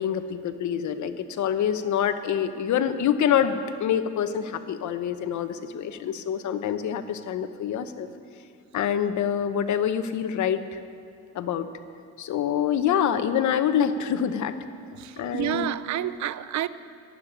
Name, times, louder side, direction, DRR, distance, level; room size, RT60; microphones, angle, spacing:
voice 1, 0.0-8.1 8.7-10.8 11.3-11.7 12.2-14.5 15.2-15.7, left 9 dB, 70° left, 10 dB, 1.0 m, -26 dB
voice 2, 15.0-16.7, right 12 dB, 65° right, 16 dB, 0.6 m, -29 dB
13.0 x 8.5 x 9.8 m, 2.5 s
cardioid pair, 90°, 30 cm